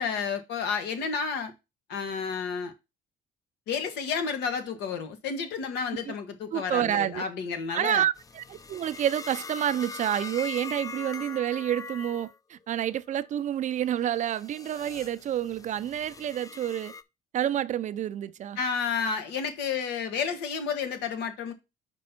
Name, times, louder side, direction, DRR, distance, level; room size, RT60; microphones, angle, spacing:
voice 1, 0.0-1.5 1.9-2.7 3.7-8.0 18.6-21.5, left 6 dB, 85° left, 1.4 m, -31 dB
voice 2, 6.5-7.2 7.7-16.9 17.3-18.6, right 11 dB, 45° right, 0.5 m, -29 dB
sound 1, 8.2-12.4 12.8-13.2 13.8-17.0, left 5 dB, 20° left, 0.5 m, -42 dB
5.3 x 4.2 x 5.8 m
cardioid pair, 110°, 17 cm